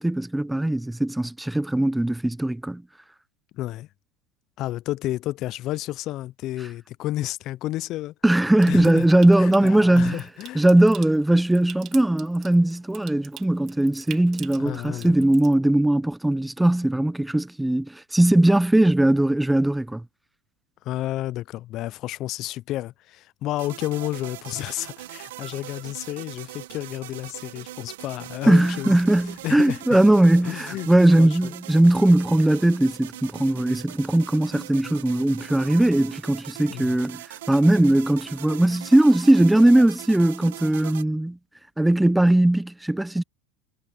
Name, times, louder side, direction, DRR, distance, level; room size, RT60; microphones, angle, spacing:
voice 1, 0.0-2.8 8.2-10.2 10.5-20.0 28.5-41.4 41.8-43.2, right 1 dB, 5° right, 0.5 m, -19 dB
voice 2, 3.5-3.9 4.6-8.1 8.7-9.1 9.4-10.7 14.6-15.1 20.8-29.0 29.4-29.8 30.4-30.9 31.2-31.5 36.7-36.9, left 15 dB, 50° left, 0.4 m, -31 dB
Water tap faucet / Sink (filling or washing) / Trickle dribble, 8.6-15.5, right 11 dB, 40° right, 2.7 m, -45 dB
sound 1, 23.6-41.0, right 15 dB, 90° right, 1.0 m, -41 dB
supercardioid pair, 125°, 0 cm